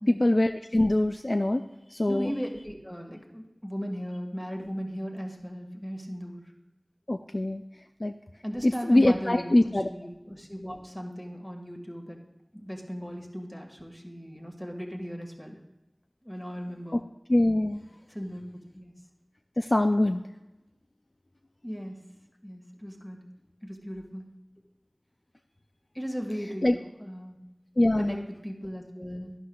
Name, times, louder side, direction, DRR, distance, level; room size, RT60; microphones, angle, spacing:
voice 1, 0.1-1.6 1.9-2.3 7.1-7.6 8.0-8.1 8.6-9.9 16.9-17.0 17.3-17.8 19.6-20.2 26.6-26.8 27.8-28.2, left 1 dB, 55° left, 6 dB, 0.4 m, -23 dB
voice 2, 2.1-6.5 8.4-12.2 12.5-15.6 16.2-17.0 18.1-18.4 18.7-18.9 21.6-22.1 22.4-23.3 23.6-24.4 25.9-27.4 28.0-29.4, equal, 20° left, 1 dB, 1.8 m, -37 dB
11.5 x 11.5 x 2.4 m, 0.97 s
wide cardioid pair, 45°, 0 cm